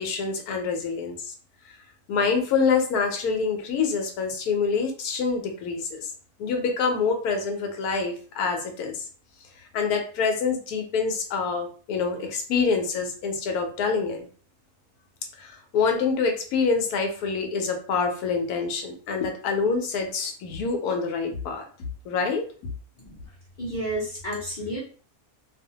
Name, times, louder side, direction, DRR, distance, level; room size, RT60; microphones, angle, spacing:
voice 1, 0.0-1.3 2.1-6.1 6.4-9.1 9.7-14.3 15.4-21.6 22.1-22.4, left 5 dB, 75° left, 4 dB, 1.1 m, -26 dB
voice 2, 23.6-24.8, right 1 dB, 45° left, -6 dB, 0.7 m, -31 dB
2.6 x 2.1 x 2.7 m, 0.41 s
omnidirectional pair, 1.7 m